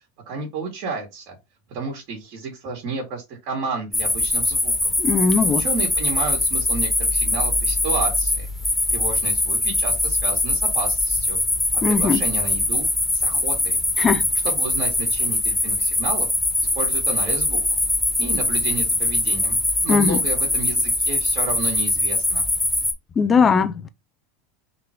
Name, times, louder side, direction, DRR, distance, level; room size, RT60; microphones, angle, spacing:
voice 1, 0.3-1.4 1.7-4.7 5.6-8.5 8.9-11.4 11.7-12.9 13.1-13.8 14.4-16.3 16.8-17.6 18.2-19.6 19.8-22.4, right 3 dB, 55° right, 2.0 m, -31 dB
sound 1, 3.9-22.9, left 2 dB, 5° left, 1.5 m, -22 dB
voice 2, 5.0-5.6 11.8-12.2 14.0-14.2 19.9-20.2 23.2-23.9, left 5 dB, 25° left, 0.6 m, -19 dB
3.9 x 3.0 x 4.5 m
hypercardioid pair, 100°, 0 cm